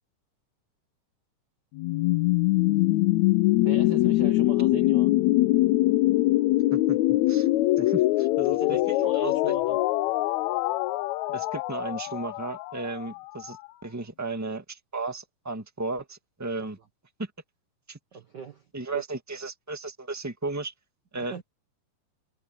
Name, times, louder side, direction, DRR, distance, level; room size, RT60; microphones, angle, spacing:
sound 1, 1.8-13.6, left 17 dB, 85° left, 1.6 m, -23 dB
voice 1, 3.5-5.1 8.5-9.8 18.1-18.7 18.9-19.0 21.1-21.4, right 6 dB, 70° right, 1.0 m, -40 dB
voice 2, 6.7-7.5 7.8-8.8 9.1-9.3 11.3-13.6 13.8-16.8 17.2-17.3 17.9-18.0 18.7-20.7 21.1-21.3, right 3 dB, 10° right, 0.9 m, -34 dB
omnidirectional pair, 3.8 m